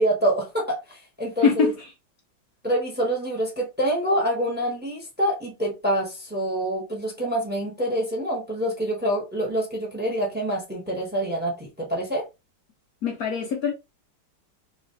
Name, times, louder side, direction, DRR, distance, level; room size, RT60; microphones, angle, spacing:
voice 1, 0.0-1.7 2.6-12.2, right 1 dB, 10° right, 0.7 m, -26 dB
voice 2, 1.4-1.7 13.0-13.7, left 6 dB, 80° left, 0.8 m, -22 dB
3.9 x 2.8 x 2.6 m
omnidirectional pair, 2.3 m